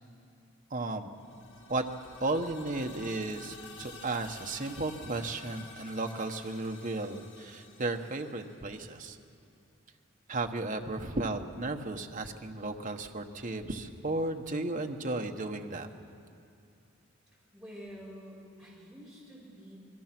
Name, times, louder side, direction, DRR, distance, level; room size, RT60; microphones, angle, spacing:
voice 1, 0.7-1.1 1.7-1.8 2.2-9.2 10.3-15.9, right 2 dB, 40° right, 5 dB, 1.2 m, -34 dB
sound 1, 1.1-9.0, left 3 dB, 60° left, 3.4 m, -51 dB
voice 2, 17.5-19.8, equal, ahead, -6 dB, 7.5 m, -48 dB
27.0 x 21.0 x 6.1 m, 2.4 s
head